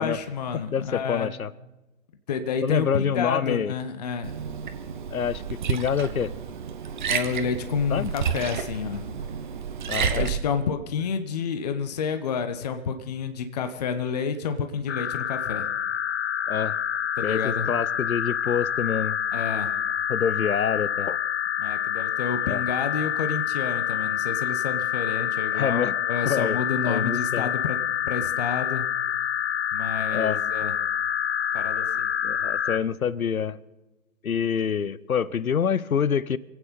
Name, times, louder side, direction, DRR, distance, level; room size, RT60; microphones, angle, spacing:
voice 1, 0.0-1.3 2.3-4.3 7.1-9.1 10.0-15.7 17.2-17.8 19.3-19.7 21.6-27.8 28.1-28.9 29.7-30.8 31.5-32.1, left 6 dB, 30° left, 0.8 m, -29 dB
voice 2, 0.7-1.5 2.6-3.7 5.1-5.4 5.7-6.3 7.9-8.1 9.9-10.3 16.5-16.8 17.2-19.2 20.1-21.2 22.5-22.6 25.5-26.0 26.3-26.6 26.8-27.5 30.1-30.4 32.2-33.6 34.2-36.4, left 7 dB, 80° left, 0.8 m, -26 dB
Liquid, 4.2-10.4, right 7 dB, 35° right, 1.0 m, -30 dB
sound 1, 14.9-32.8, left 9 dB, 50° left, 0.5 m, -27 dB
26.5 x 9.0 x 5.2 m
figure-of-eight pair, 145°, 42 cm